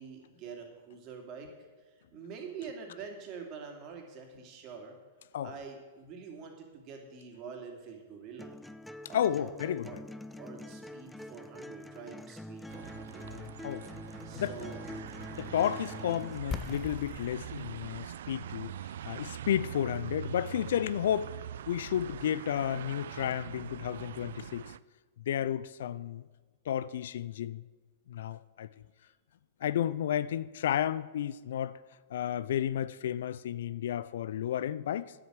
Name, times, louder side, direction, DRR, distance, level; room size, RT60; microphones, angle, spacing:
voice 1, 0.0-5.0 5.4-8.6 9.1-10.0 10.4-13.3 14.2-14.8 15.3-15.5 29.9-30.0, right 5 dB, 40° right, 2.7 m, -46 dB
sound 1, 8.4-16.4, left 1 dB, 5° left, 0.5 m, -45 dB
voice 2, 9.1-10.0 13.3-13.8 14.3-14.5 15.3-18.7 19.0-21.4 21.7-24.7 25.3-26.2 26.7-27.7 28.1-28.7 29.6-31.8 32.1-35.1, left 10 dB, 70° left, 0.4 m, -32 dB
sound 2, 12.7-24.8, right 10 dB, 70° right, 0.3 m, -43 dB
sound 3, 16.5-22.2, left 6 dB, 25° left, 0.8 m, -45 dB
10.0 x 8.1 x 7.6 m
hypercardioid pair, 105°, 0 cm